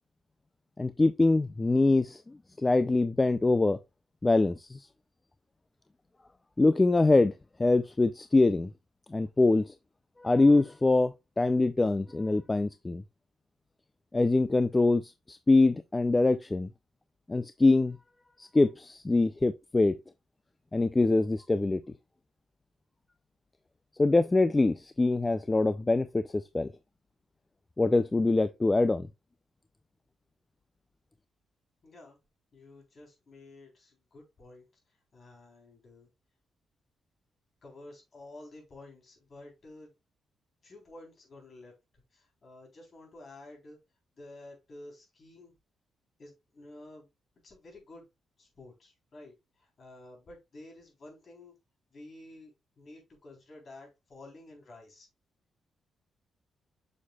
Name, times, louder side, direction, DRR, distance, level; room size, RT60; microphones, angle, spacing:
voice 1, 0.8-3.8 4.2-4.9 6.6-7.3 7.6-8.7 9.1-9.7 10.2-13.0 14.1-16.7 17.3-18.0 18.4-20.0 20.7-21.8 24.0-26.7 27.8-29.1, left 2 dB, 15° left, 0.3 m, -24 dB
voice 2, 31.8-32.2 32.5-34.7 35.1-36.1 37.6-39.9 40.6-41.7 42.1-43.8 44.1-45.5 46.2-47.1 47.4-48.1 48.4-51.5 51.9-55.1, left 2 dB, 40° left, 3.5 m, -51 dB
7.3 x 6.5 x 2.3 m
cardioid pair, 145°, 0 cm